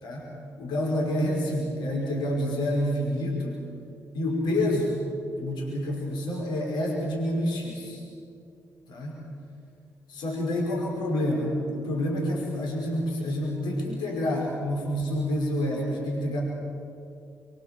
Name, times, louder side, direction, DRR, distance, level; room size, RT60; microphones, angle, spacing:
voice 1, 0.6-3.6 4.1-5.0 5.4-8.0 8.9-9.2 10.1-16.4, left 1 dB, 75° left, -2 dB, 5.5 m, -28 dB
25.5 x 23.5 x 7.8 m, 2.5 s
hypercardioid pair, 40°, 8 cm